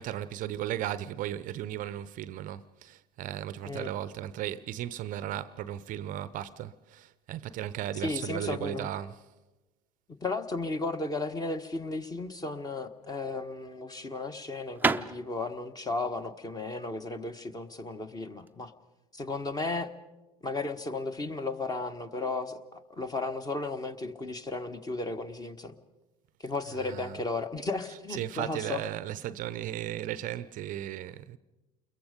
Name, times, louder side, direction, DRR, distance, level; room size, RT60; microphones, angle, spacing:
voice 1, 0.0-9.2 26.7-27.2 27.9-31.4, right 12 dB, 45° right, 0.7 m, -36 dB
voice 2, 8.0-8.9 10.2-18.7 19.1-19.9 20.4-25.7 26.4-28.8, left 3 dB, 20° left, 1.4 m, -34 dB
sound 1, 12.9-18.6, right 4 dB, 10° right, 0.7 m, -34 dB
29.0 x 22.0 x 5.2 m
hypercardioid pair, 80°, 19 cm